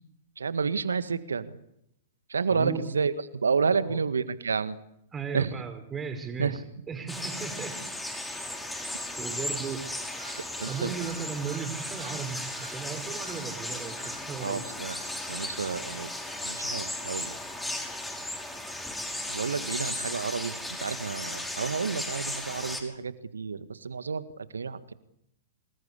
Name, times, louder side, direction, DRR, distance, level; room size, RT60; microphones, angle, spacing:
voice 1, 0.4-1.6 2.3-4.8 5.3-5.5 6.4-6.6 10.6-10.9 14.4-14.9 15.3-16.1 16.4-17.4 19.3-24.9, right 5 dB, 80° right, 13 dB, 1.7 m, -30 dB
voice 2, 2.5-2.8 3.7-4.0 5.1-7.8 9.2-9.8 10.7-14.6, right 6 dB, 20° right, 7 dB, 5.2 m, -36 dB
sound 1, 7.1-22.8, left 1 dB, 5° left, 5.9 m, -36 dB
sound 2, 10.2-11.7 12.0-12.2 12.6-12.8 13.2-13.4 14.0-14.2 14.8-15.1, right 4 dB, 45° right, 3.8 m, -48 dB
27.0 x 20.5 x 8.5 m, 0.79 s
figure-of-eight pair, 105°, 0 cm